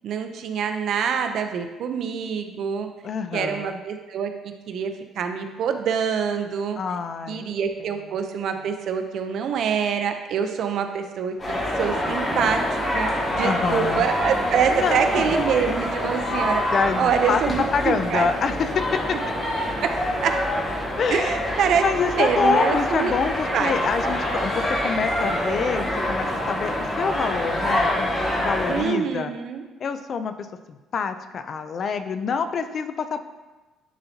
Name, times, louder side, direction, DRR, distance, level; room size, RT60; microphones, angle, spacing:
voice 1, 0.0-2.9 3.3-6.8 7.3-11.3 11.8-16.6 17.0-18.3 20.2-20.3 21.1-21.8 22.2-23.1 23.5-23.7 24.0-24.1 28.7-29.6, right 7 dB, 65° right, 6 dB, 0.6 m, -25 dB
voice 2, 3.0-3.8 6.8-7.4 13.4-14.1 14.7-15.2 16.7-19.2 21.0-21.4 21.8-29.3 29.8-30.3 30.7-33.2, left 5 dB, 45° left, 10 dB, 0.4 m, -26 dB
sound 1, 11.4-28.8, left 1 dB, 30° left, 1.8 m, -26 dB
10.0 x 4.2 x 2.8 m, 1.2 s
cardioid pair, 120°, 0 cm